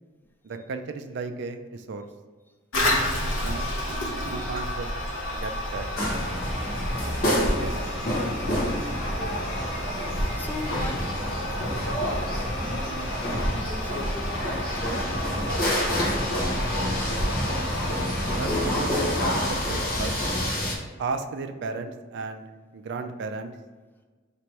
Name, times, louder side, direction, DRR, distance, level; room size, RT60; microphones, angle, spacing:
voice 1, 0.4-2.1 2.7-3.7 4.3-4.9 5.3-5.9 7.2-7.3 7.6-7.8 18.3-20.2 21.0-22.4 22.7-23.5, right 4 dB, 65° right, 7 dB, 0.4 m, -34 dB
Toilet flush, 2.7-19.7, left 1 dB, 80° left, 0.9 m, -31 dB
sound 1, 6.0-20.8, equal, 50° left, 1.0 m, -28 dB
voice 2, 10.3-11.2 12.6-14.3 14.8-15.5 16.1-16.6 18.7-18.8, left 1 dB, 10° left, 2 dB, 0.4 m, -39 dB
3.0 x 2.9 x 4.6 m, 1.4 s
head